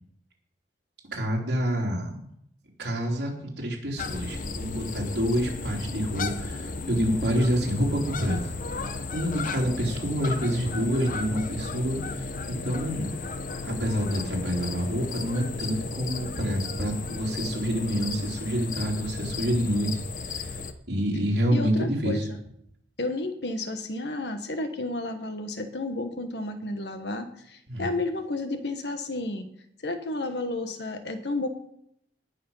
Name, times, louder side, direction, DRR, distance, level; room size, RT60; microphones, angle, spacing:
voice 1, 1.1-2.3 2.8-8.5 9.1-13.1 13.6-19.9 20.2-20.6 20.9-22.2 27.7-27.9, equal, 70° right, -1 dB, 3.4 m, -27 dB
sound 1, 4.0-20.7, left 3 dB, 50° left, 0.9 m, -35 dB
voice 2, 21.5-22.4 23.0-29.5 29.8-31.5, left 2 dB, 70° left, 8 dB, 1.4 m, -31 dB
18.5 x 6.6 x 5.6 m, 0.72 s
head